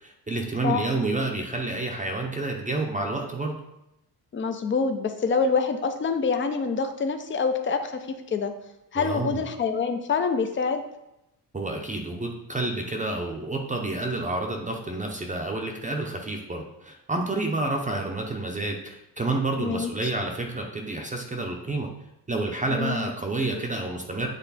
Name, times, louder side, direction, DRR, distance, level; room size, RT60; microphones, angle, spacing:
voice 1, 0.0-3.6 9.0-9.4 11.5-21.9 22.3-24.3, right 2 dB, 20° right, 2 dB, 0.7 m, -29 dB
voice 2, 4.3-8.5 8.9-10.8 19.6-19.9 22.7-23.1, left 5 dB, 30° left, 7 dB, 0.6 m, -26 dB
8.2 x 3.3 x 4.1 m, 0.88 s
cardioid pair, 105°, 41 cm